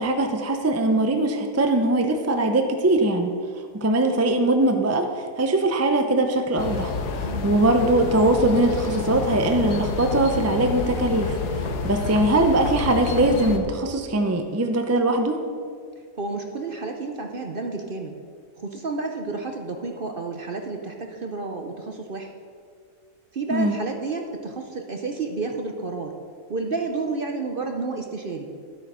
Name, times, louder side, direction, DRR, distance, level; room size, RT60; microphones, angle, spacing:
voice 1, 0.0-3.3 3.7-5.1 5.4-6.9 7.4-11.4 11.8-15.4 23.5-23.7, right 2 dB, 20° right, 5 dB, 0.4 m, -21 dB
sound 1, 6.6-13.6, left 4 dB, 80° left, 1.5 m, -29 dB
voice 2, 7.2-7.5 16.2-18.2 18.6-22.3 23.3-26.2 26.5-28.5, right 3 dB, 45° right, 3 dB, 0.7 m, -30 dB
12.0 x 8.2 x 5.6 m, 2.1 s
omnidirectional pair, 1.7 m